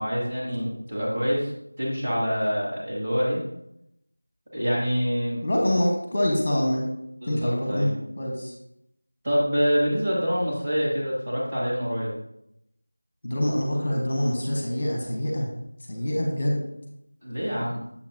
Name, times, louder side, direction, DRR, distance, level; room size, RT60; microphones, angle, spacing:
voice 1, 0.0-1.5 1.8-3.4 4.5-5.4 7.2-8.0 9.2-12.1 17.2-17.8, equal, 15° right, -9 dB, 1.8 m, -26 dB
voice 2, 5.4-6.8 7.3-8.5 13.2-15.5 15.9-16.6, left 1 dB, 30° left, 0 dB, 1.1 m, -25 dB
7.2 x 6.5 x 2.7 m, 0.80 s
figure-of-eight pair, 170°, 0 cm